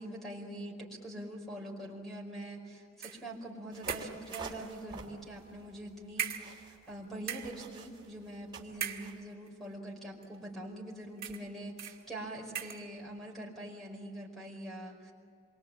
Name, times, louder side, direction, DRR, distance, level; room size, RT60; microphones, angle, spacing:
voice 1, 0.0-15.1, right 1 dB, ahead, -2 dB, 5.0 m, -44 dB
sound 1, 3.0-3.3 3.9-4.6 5.5-5.6 6.2-6.9 7.2-7.6 8.7-9.5 10.2-10.3 11.2-11.5 11.8-12.0 12.5-12.9, right 9 dB, 50° right, 1.6 m, -39 dB
sound 2, 3.7-9.2, right 2 dB, 25° right, 3.0 m, -47 dB
27.5 x 23.5 x 8.7 m, 2.4 s
head